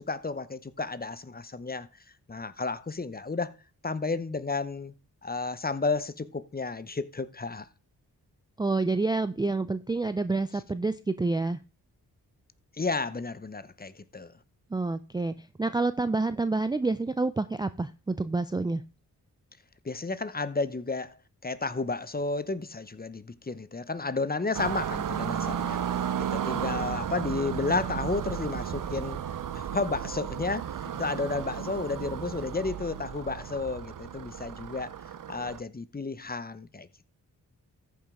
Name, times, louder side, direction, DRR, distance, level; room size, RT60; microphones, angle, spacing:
voice 1, 0.0-1.9 2.3-3.5 3.8-4.9 5.2-7.7 12.8-14.3 19.8-21.1 21.4-25.8 26.2-29.2 29.5-34.9 35.3-36.9, left 3 dB, 25° left, 0.8 m, -32 dB
voice 2, 8.6-11.6 14.7-18.8, right 3 dB, 10° right, 0.4 m, -28 dB
sound 1, 24.5-35.6, right 9 dB, 55° right, 0.7 m, -34 dB
14.0 x 5.5 x 3.6 m
supercardioid pair, 40°, 39 cm